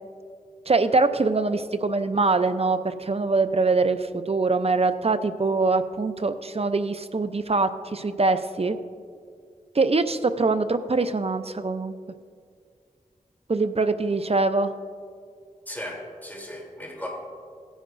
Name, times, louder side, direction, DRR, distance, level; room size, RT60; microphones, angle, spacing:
voice 1, 0.7-8.8 9.7-11.9 13.5-14.7, right 3 dB, 45° right, 10 dB, 0.6 m, -23 dB
voice 2, 15.7-17.1, left 1 dB, 10° left, -2 dB, 3.2 m, -36 dB
17.0 x 10.0 x 2.6 m, 2.2 s
wide cardioid pair, 45°, 15 cm